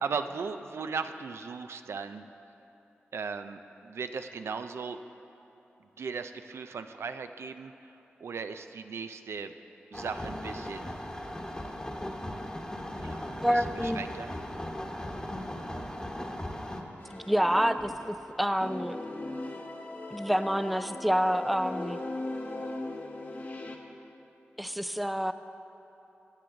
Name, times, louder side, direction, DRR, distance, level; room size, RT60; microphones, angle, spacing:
voice 1, 0.0-2.2 3.1-5.0 6.0-9.5 9.9-11.0 13.0-14.3, right 5 dB, 75° right, 9 dB, 0.4 m, -37 dB
sound 1, 9.9-16.8, left 1 dB, 20° left, 1.2 m, -38 dB
voice 2, 13.4-14.0 17.1-19.0 20.1-22.0 24.6-25.3, equal, ahead, 11 dB, 0.4 m, -28 dB
sound 2, 17.0-18.3 18.6-23.8, left 2 dB, 45° left, 1.0 m, -39 dB
15.0 x 7.6 x 3.8 m, 3.0 s
cardioid pair, 45°, 4 cm